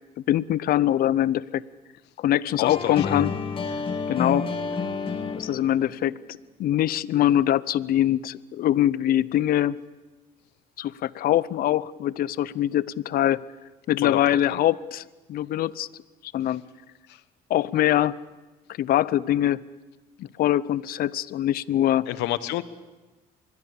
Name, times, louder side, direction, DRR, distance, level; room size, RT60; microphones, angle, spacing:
voice 1, 0.3-1.6 2.2-3.3 4.1-4.5 5.3-6.2 6.6-9.8 10.8-13.4 13.9-15.0 15.3-15.9 16.2-16.6 17.5-18.2 18.8-19.6 20.2-22.1, left 12 dB, 60° left, 20 dB, 0.7 m, -23 dB
voice 2, 2.6-3.1 14.0-14.2 14.5-14.6 17.1-17.2 22.1-22.6, left 15 dB, 85° left, 15 dB, 1.1 m, -29 dB
sound 1, 2.6-5.9, left 4 dB, 30° left, 2.5 m, -30 dB
25.0 x 22.0 x 7.1 m, 1.2 s
cardioid pair, 110°, 17 cm